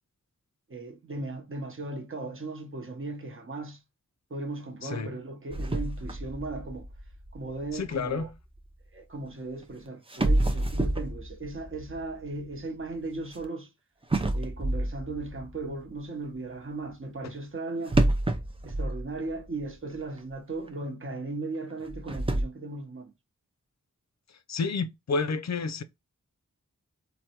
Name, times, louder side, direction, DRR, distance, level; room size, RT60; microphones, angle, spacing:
voice 1, 0.7-3.8 4.3-6.9 7.3-8.3 8.9-13.7 14.3-18.0 18.6-23.1, right 2 dB, 40° right, 0.8 m, -37 dB
sound 1, 5.5-8.7 9.6-9.7 10.1-13.4 14.1-16.0 17.9-19.7 19.9-20.0 20.7-20.8 21.8-22.4, right 1 dB, 15° right, 0.5 m, -29 dB
voice 2, 7.7-8.3 24.5-25.8, left 4 dB, 60° left, 0.4 m, -30 dB
3.2 x 2.1 x 2.9 m
wide cardioid pair, 50°, 32 cm